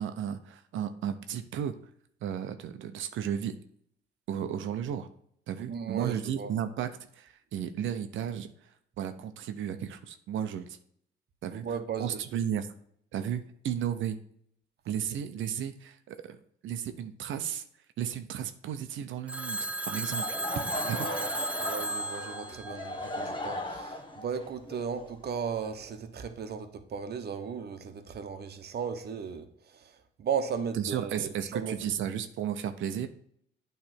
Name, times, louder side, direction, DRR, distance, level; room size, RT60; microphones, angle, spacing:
voice 1, 0.0-1.7 2.2-3.6 4.3-5.1 5.5-8.5 9.0-10.8 11.4-11.7 12.0-12.7 13.1-14.2 14.9-16.4 16.6-17.6 18.0-20.4 20.9-21.0 30.8-33.1, right 9 dB, 75° right, 9 dB, 0.8 m, -34 dB
voice 2, 5.6-6.5 11.5-12.3 20.5-21.3 21.6-31.8, right 6 dB, 55° right, 8 dB, 1.1 m, -36 dB
Telephone, 19.3-23.5, right 1 dB, 5° right, 0.4 m, -35 dB
Laughter / Crowd, 20.0-25.9, left 1 dB, 25° left, 1.2 m, -37 dB
8.7 x 3.4 x 5.9 m, 0.67 s
cardioid pair, 90°, 20 cm